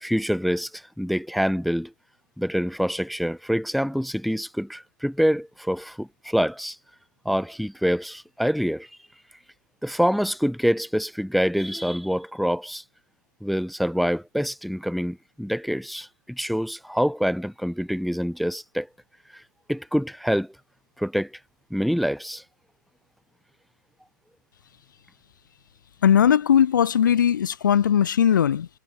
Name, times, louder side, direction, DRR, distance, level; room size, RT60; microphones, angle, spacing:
voice 1, 0.0-1.9 2.4-6.8 7.3-8.9 9.8-12.8 13.4-18.9 19.3-19.4 19.7-20.5 21.0-21.3 21.7-22.4, equal, ahead, 0.4 m, -26 dB
voice 2, 26.0-28.7, left 9 dB, 70° left, 0.4 m, -19 dB
hypercardioid pair, 145°, 11 cm